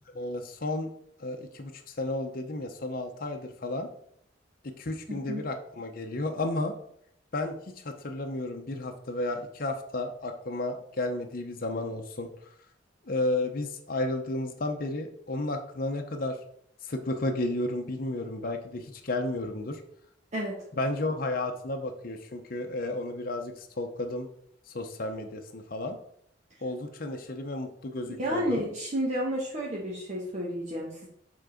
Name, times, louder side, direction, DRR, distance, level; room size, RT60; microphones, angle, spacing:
voice 1, 0.1-0.9 1.2-3.9 4.6-6.7 7.3-7.6 7.8-12.3 13.1-16.4 16.8-19.8 20.8-24.3 24.7-26.0 26.6-28.6, left 2 dB, 50° left, 4 dB, 0.8 m, -32 dB
voice 2, 5.1-5.5 20.3-20.6 28.2-31.1, equal, 40° right, -3 dB, 1.2 m, -31 dB
7.2 x 3.8 x 5.1 m, 0.68 s
head